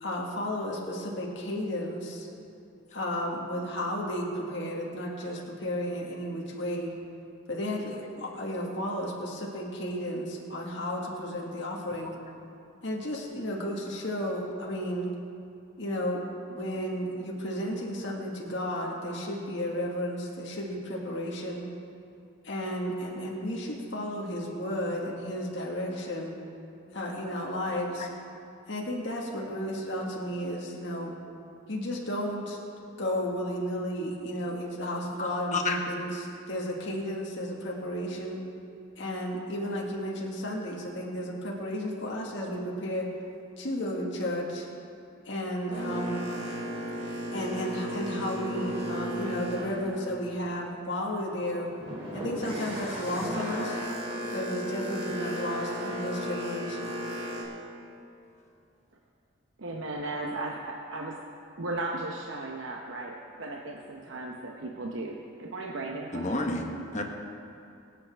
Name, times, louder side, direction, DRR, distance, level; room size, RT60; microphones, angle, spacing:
voice 1, 0.0-2.3 2.9-7.0 7.5-12.2 12.8-15.1 15.8-16.2 16.5-21.7 22.4-26.4 26.9-28.1 28.7-31.1 31.7-32.6 33.0-38.4 39.0-43.1 43.6-44.7 45.3-46.3 47.3-51.7 52.1-53.8 54.3-57.0, equal, 60° left, -2 dB, 1.8 m, -33 dB
voice 2, 27.7-28.1 35.2-35.8 46.3-46.4 53.9-54.0 66.1-67.0, left 2 dB, 35° left, 2 dB, 1.2 m, -32 dB
Boat Water vehicle, 45.7-50.7 51.2-57.4, equal, 30° right, 3.0 m, -35 dB
voice 3, 59.6-61.2 61.6-66.5, right 2 dB, 70° right, 0 dB, 0.9 m, -36 dB
24.5 x 8.4 x 3.5 m, 2.6 s
head